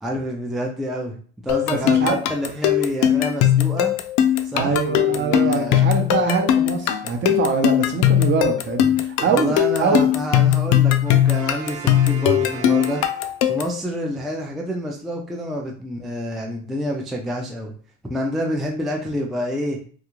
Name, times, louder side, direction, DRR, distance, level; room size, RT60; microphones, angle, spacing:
voice 1, 0.0-1.1 1.4-3.9 4.4-5.9 9.3-13.2 13.5-17.7 18.1-19.8, equal, ahead, -1 dB, 0.4 m, -28 dB
sound 1, 1.5-13.8, left 11 dB, 70° left, 0.4 m, -19 dB
voice 2, 1.8-2.2 4.5-10.1, right 5 dB, 35° right, 4 dB, 0.7 m, -23 dB
Brass instrument, 11.0-13.7, right 7 dB, 80° right, 0.8 m, -37 dB
2.4 x 2.3 x 3.0 m, 0.43 s
supercardioid pair, 105°, 32 cm